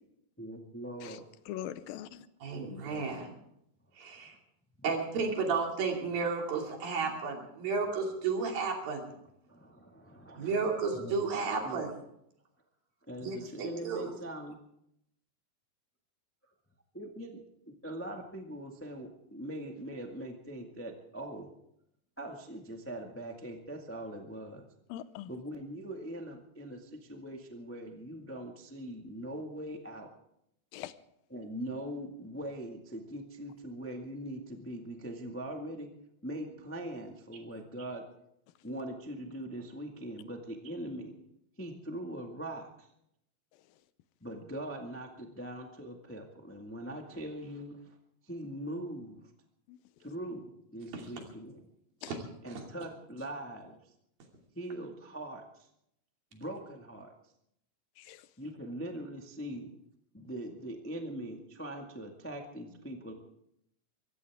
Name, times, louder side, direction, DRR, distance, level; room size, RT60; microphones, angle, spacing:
voice 1, 0.4-1.2 2.5-3.1 4.2-4.3 4.8-4.9 9.5-11.9 13.1-14.6 16.9-21.5 22.2-24.6 25.3-30.1 31.3-35.9 36.2-38.1 38.6-41.2 41.6-42.9 44.2-48.0 48.2-49.2 50.0-51.6 52.4-53.8 54.5-55.7 56.3-57.1 58.4-59.8 60.1-63.1, right 1 dB, 10° left, 2 dB, 0.6 m, -42 dB
voice 2, 1.5-2.3 24.9-25.3 30.7-30.9 49.7-49.8 52.0-52.1 58.0-58.3, left 12 dB, 85° left, 14 dB, 2.5 m, -42 dB
voice 3, 2.4-3.3 4.0-4.4 4.8-9.1 10.4-11.9 13.2-14.1 50.9-51.0 52.1-52.2 52.5-52.6, right 4 dB, 80° right, 1 dB, 4.5 m, -33 dB
24.0 x 15.5 x 3.6 m, 0.76 s
omnidirectional pair, 4.1 m